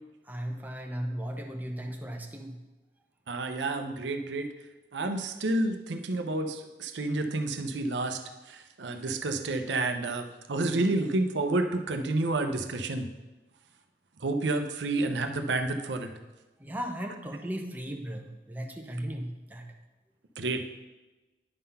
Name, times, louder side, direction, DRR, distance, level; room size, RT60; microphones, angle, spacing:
voice 1, 0.3-2.6 16.6-19.7, equal, 10° right, 2 dB, 0.6 m, -36 dB
voice 2, 3.3-4.5 4.9-8.2 8.5-13.1 14.2-16.1 20.4-20.6, right 2 dB, 80° right, 6 dB, 0.7 m, -29 dB
9.7 x 3.9 x 5.5 m, 1.1 s
head